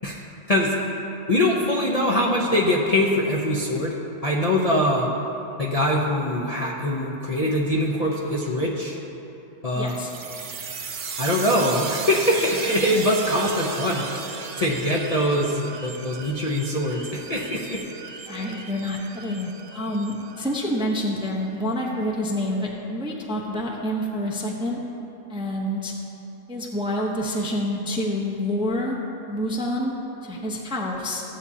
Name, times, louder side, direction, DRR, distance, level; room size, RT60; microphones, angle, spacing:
voice 1, 1.3-4.0 4.2-5.1 5.6-9.0 9.6-10.0 11.2-14.0 14.6-17.8, left 1 dB, 35° left, -4 dB, 0.7 m, -23 dB
voice 2, 9.7-10.1 18.3-24.8 25.3-25.9 26.5-29.0 29.3-29.9 30.2-31.2, left 1 dB, 5° right, -2 dB, 0.6 m, -27 dB
sound 1, 9.9-21.3, right 5 dB, 50° right, 0.6 m, -36 dB
15.0 x 8.2 x 2.8 m, 3.0 s
omnidirectional pair, 1.4 m